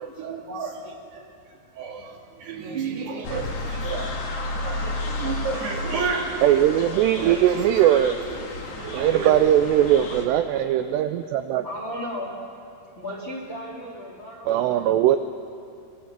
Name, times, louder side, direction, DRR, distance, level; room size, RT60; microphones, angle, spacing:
voice 1, 0.0-4.2 4.5-6.5 7.0-9.3, right 5 dB, 60° right, 1 dB, 3.8 m, -32 dB
sound 1, 3.2-10.3, left 2 dB, 55° left, 4.2 m, -32 dB
voice 2, 6.4-8.2 8.9-11.7 14.5-15.2, right 11 dB, 85° right, 8 dB, 2.4 m, -20 dB
voice 3, 11.6-12.3 13.0-14.9, left 1 dB, 30° left, -2 dB, 2.6 m, -35 dB
25.0 x 22.0 x 7.4 m, 2.5 s
omnidirectional pair, 5.7 m